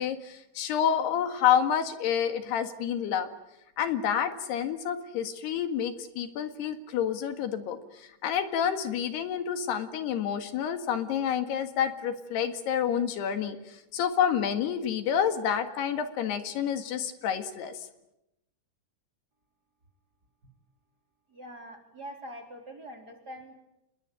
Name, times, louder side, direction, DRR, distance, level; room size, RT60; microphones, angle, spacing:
voice 1, 0.0-3.3 3.8-17.9, left 8 dB, 75° left, 8 dB, 3.8 m, -29 dB
voice 2, 21.3-23.5, equal, 25° right, 3 dB, 3.9 m, -44 dB
28.0 x 21.5 x 9.0 m, 0.87 s
omnidirectional pair, 4.8 m